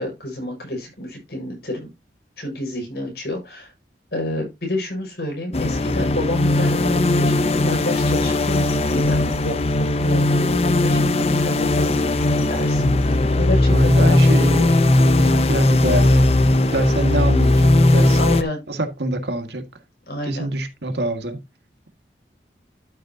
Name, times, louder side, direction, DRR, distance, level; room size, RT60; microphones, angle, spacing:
voice 1, 0.0-1.9 2.4-3.7 4.1-14.4 18.2-18.6 20.1-20.5, left 1 dB, 65° left, 6.2 m, -29 dB
sound 1, 5.5-18.4, left 2 dB, 35° left, 0.6 m, -18 dB
voice 2, 13.7-18.2 18.7-19.6 20.3-21.4, right 1 dB, 80° right, 1.9 m, -25 dB
12.5 x 6.5 x 2.8 m
head